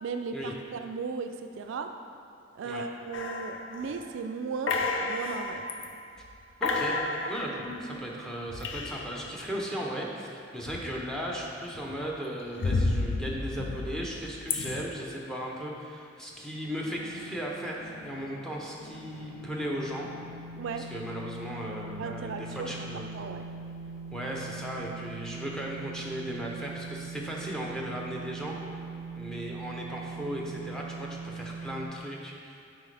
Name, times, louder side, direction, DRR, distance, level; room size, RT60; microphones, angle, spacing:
voice 1, 0.0-1.9 2.6-5.6 20.6-20.9 22.0-22.9 23.1-23.4, right 5 dB, 70° right, 6 dB, 0.3 m, -36 dB
sound 1, 3.1-4.1 4.7-5.9 6.2-6.4 6.6-9.3 10.6-11.3 11.7-14.8, left 3 dB, 70° left, 0.5 m, -32 dB
voice 2, 6.6-7.0 7.3-20.1 20.8-23.1 24.1-28.6 29.2-32.8, equal, 5° left, -2 dB, 0.8 m, -36 dB
sound 2, 16.3-31.9, right 3 dB, 50° left, 0.8 m, -42 dB
9.0 x 4.1 x 3.3 m, 2.6 s
head